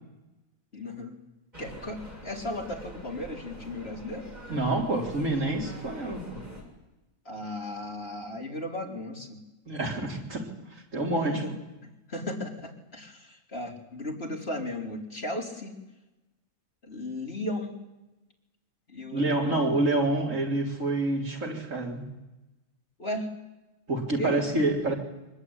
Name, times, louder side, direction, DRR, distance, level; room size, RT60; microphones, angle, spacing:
voice 1, 0.7-1.2 1.6-4.3 7.2-9.4 11.2-11.5 12.1-15.7 16.8-17.7 18.9-19.7 23.0-23.3 24.2-24.5, left 1 dB, 40° left, 0 dB, 4.4 m, -36 dB
sound 1, 1.5-6.6, equal, 25° right, 6.8 m, -45 dB
voice 2, 4.5-6.4 9.7-11.4 19.1-22.1 23.9-24.9, right 2 dB, 55° right, 0 dB, 4.2 m, -27 dB
24.5 x 21.0 x 9.9 m, 1.0 s
omnidirectional pair, 1.6 m